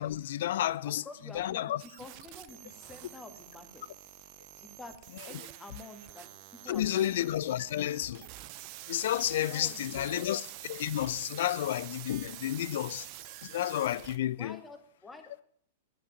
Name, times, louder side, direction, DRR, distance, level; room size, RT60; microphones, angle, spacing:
voice 1, 0.0-1.0 1.3-1.8 5.3-5.4 6.7-8.3 8.9-13.1 13.4-14.6, left 12 dB, 55° left, 0.5 m, -31 dB
voice 2, 0.8-3.8 4.6-5.0 5.2-6.4 6.6-7.3 9.5-10.3 14.4-15.4, left 2 dB, 10° left, 1.9 m, -49 dB
sound 1, 1.8-14.2, right 16 dB, 40° right, 0.6 m, -47 dB
11.0 x 8.4 x 9.1 m
figure-of-eight pair, 100°, 0 cm